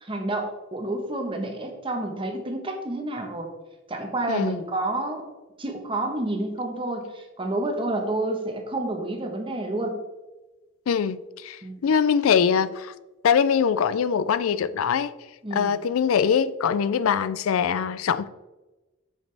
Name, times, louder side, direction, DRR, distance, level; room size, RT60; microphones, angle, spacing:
voice 1, 0.0-3.5 3.9-5.2 5.6-10.0 11.6-11.8 15.4-15.8, right 2 dB, 25° right, 1.2 m, -29 dB
voice 2, 4.3-4.6 10.9-12.9 13.2-15.1 15.5-18.3, left 7 dB, 80° left, 0.4 m, -23 dB
8.3 x 6.5 x 3.4 m
head